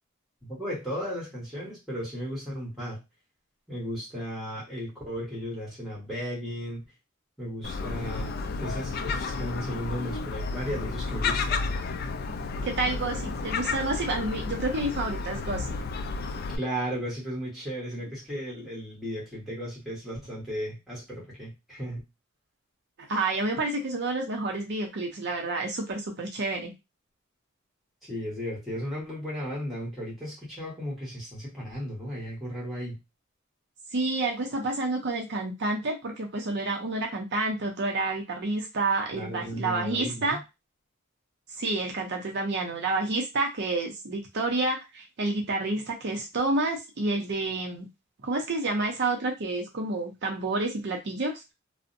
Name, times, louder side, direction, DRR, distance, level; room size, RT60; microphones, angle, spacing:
voice 1, 0.4-3.0 3.7-6.8 7.4-11.6 16.5-22.0 28.0-33.0 39.1-40.4, equal, ahead, -6 dB, 1.2 m, -35 dB
Gull seagull, 7.6-16.6, left 4 dB, 50° left, 0.3 m, -32 dB
voice 2, 12.6-15.8 23.1-26.7 33.9-40.4 41.6-47.9 48.2-51.4, right 2 dB, 55° right, 2 dB, 0.5 m, -29 dB
2.5 x 2.0 x 2.5 m, 0.23 s
head